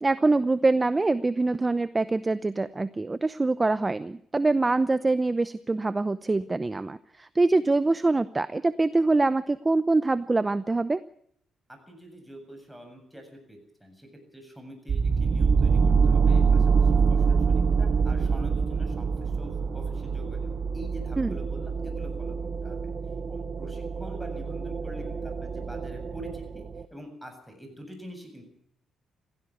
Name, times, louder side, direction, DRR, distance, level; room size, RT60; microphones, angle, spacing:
voice 1, 0.0-11.0 21.2-21.3, right 3 dB, 20° right, 15 dB, 0.7 m, -24 dB
voice 2, 11.7-22.9 23.3-28.4, equal, ahead, 4 dB, 7.7 m, -45 dB
sound 1, 14.9-26.8, right 5 dB, 45° right, 1.2 m, -25 dB
17.0 x 15.5 x 9.8 m, 0.68 s
cardioid pair, 90°, 0 cm